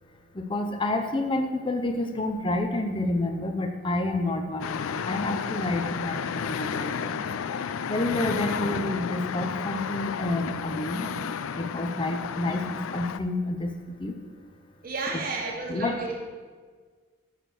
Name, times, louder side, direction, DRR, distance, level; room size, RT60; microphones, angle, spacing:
voice 1, 0.4-7.2 7.9-11.2 11.6-12.6 12.9-14.1 15.7-15.9, left 2 dB, 25° left, 4 dB, 0.6 m, -29 dB
sound 1, 4.6-13.2, left 7 dB, 80° left, 0.4 m, -32 dB
voice 2, 14.8-16.1, right 3 dB, 45° right, 0 dB, 1.3 m, -32 dB
6.5 x 6.0 x 6.8 m, 1.5 s
head